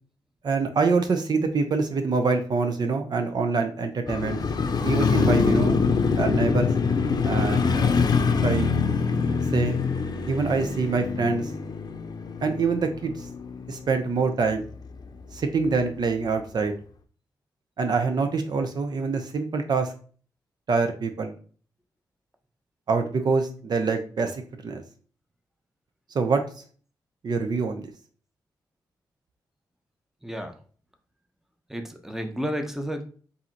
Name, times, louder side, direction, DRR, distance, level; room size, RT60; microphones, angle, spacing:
voice 1, 0.4-4.4 4.8-5.8 6.2-6.7 7.2-8.0 8.4-8.7 9.5-9.8 10.3-11.5 12.4-13.3 13.7-14.6 15.3-16.7 17.8-19.9 20.7-21.3 22.9-24.8 26.1-26.4 27.2-27.9, right 4 dB, 60° right, 6 dB, 0.6 m, -25 dB
Motorcycle, 4.1-14.2 14.5-14.6, left 5 dB, 55° left, 0.6 m, -24 dB
voice 2, 31.7-33.0, equal, 5° right, 5 dB, 0.8 m, -31 dB
3.6 x 2.8 x 4.4 m, 0.42 s
cardioid pair, 65°, 8 cm